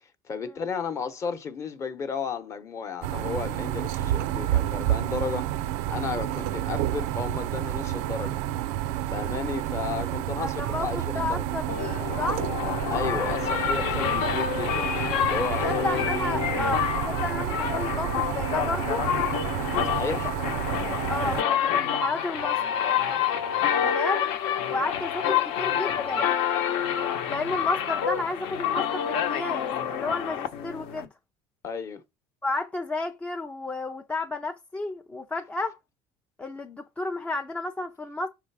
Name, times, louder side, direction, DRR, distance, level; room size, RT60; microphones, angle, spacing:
voice 1, 0.3-5.5 5.9-8.4 9.1-11.5 12.9-16.1 19.8-20.3 23.7-24.0 31.6-32.0, left 6 dB, 30° left, 0.8 m, -33 dB
sound 1, 3.0-21.4, right 13 dB, 80° right, 0.4 m, -30 dB
voice 2, 10.4-12.4 15.5-19.0 19.8-20.3 21.1-22.6 23.8-24.3 24.7-26.3 27.3-31.1 32.4-35.8 36.4-38.3, left 2 dB, 10° left, 0.4 m, -32 dB
sound 2, 11.7-31.1, left 9 dB, 70° left, 0.9 m, -28 dB
5.8 x 3.7 x 4.7 m
cardioid pair, 150°, 10 cm